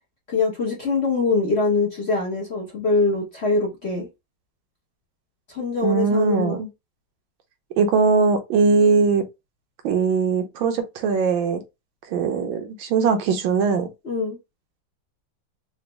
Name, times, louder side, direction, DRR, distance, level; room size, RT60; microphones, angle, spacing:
voice 1, 0.3-4.1 5.5-6.6 14.0-14.4, left 3 dB, 45° left, 0.9 m, -23 dB
voice 2, 5.8-6.7 7.8-9.2 9.8-11.6 12.1-13.9, right 5 dB, 75° right, 1.5 m, -20 dB
4.0 x 2.4 x 3.3 m
omnidirectional pair, 2.2 m